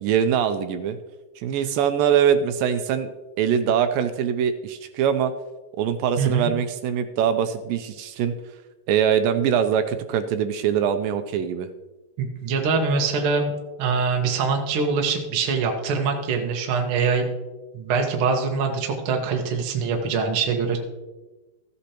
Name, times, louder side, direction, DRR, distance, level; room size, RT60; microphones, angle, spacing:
voice 1, 0.0-1.0 1.4-3.1 3.4-5.3 5.8-8.3 8.9-11.7, right 8 dB, 80° right, 9 dB, 2.2 m, -22 dB
voice 2, 6.2-6.5 12.2-17.3 17.7-20.8, right 5 dB, 60° right, 2 dB, 1.4 m, -24 dB
14.5 x 8.2 x 2.9 m, 1.1 s
omnidirectional pair, 4.2 m